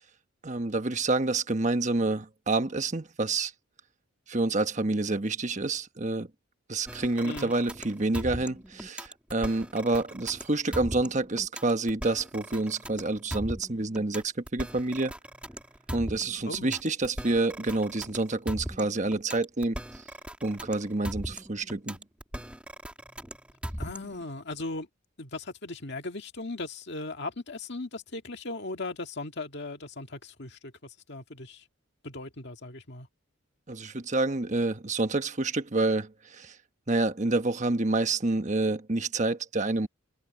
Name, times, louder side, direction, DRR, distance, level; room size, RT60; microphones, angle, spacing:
voice 1, 0.4-3.5 4.3-6.3 6.7-15.1 15.9-20.0 20.4-22.0 33.7-36.6 36.9-39.9, right 2 dB, 35° right, 1.2 m, -28 dB
sound 1, 6.9-24.3, equal, 5° right, 2.6 m, -39 dB
voice 2, 23.8-24.9 25.2-31.6 32.0-33.1, left 2 dB, 55° left, 1.9 m, -38 dB
head